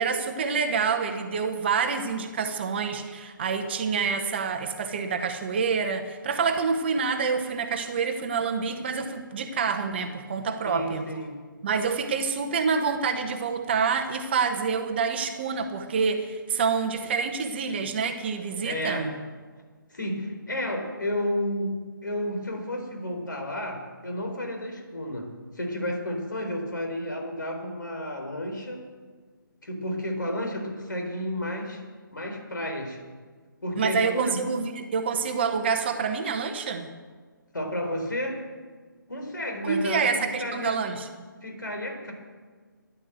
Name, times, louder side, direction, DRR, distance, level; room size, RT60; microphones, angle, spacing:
voice 1, 0.0-11.0 11.6-19.1 33.8-36.9 39.6-41.1, right 5 dB, 30° right, 7 dB, 1.1 m, -27 dB
voice 2, 10.6-11.3 18.6-19.1 19.9-21.7 22.0-28.8 29.6-31.8 32.1-33.0 33.6-34.4 37.5-38.4 39.1-40.8 41.4-42.1, left 1 dB, 65° left, 3 dB, 4.1 m, -31 dB
13.5 x 10.5 x 7.6 m, 1.5 s
figure-of-eight pair, 145°, 11 cm